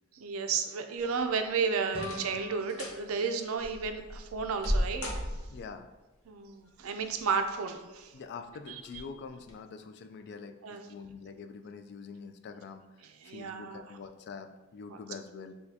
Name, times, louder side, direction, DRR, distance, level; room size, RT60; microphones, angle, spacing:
voice 1, 0.1-5.1 6.3-8.1 8.9-9.0 10.6-10.8 13.2-13.8 14.9-15.0, right 5 dB, 85° right, 6 dB, 0.4 m, -32 dB
sound 1, 1.0-1.4 1.9-2.4 2.7-3.0 3.6-5.8 7.0-7.6 8.0-8.1 8.9-9.1 9.4-9.5, equal, 85° left, 0.9 m, -35 dB
sound 2, 1.9-4.7, left 2 dB, 30° right, 0.6 m, -45 dB
voice 2, 5.5-5.9 8.1-12.8 13.2-15.5, left 5 dB, 55° left, 8 dB, 0.3 m, -45 dB
6.4 x 2.3 x 2.7 m, 1.2 s
head